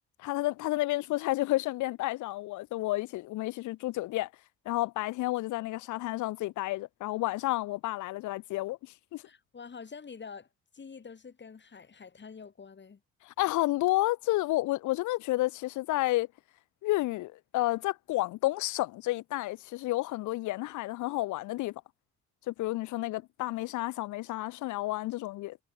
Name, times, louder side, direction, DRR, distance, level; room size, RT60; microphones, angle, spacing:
voice 1, 0.2-4.3 4.7-8.8 9.1-9.2 13.2-16.3 16.8-21.8 22.5-25.6, left 18 dB, 75° left, 0.5 m, -31 dB
voice 2, 9.2-10.5 10.7-13.0, left 5 dB, 35° left, 5.0 m, -46 dB
cardioid pair, 90°, 30 cm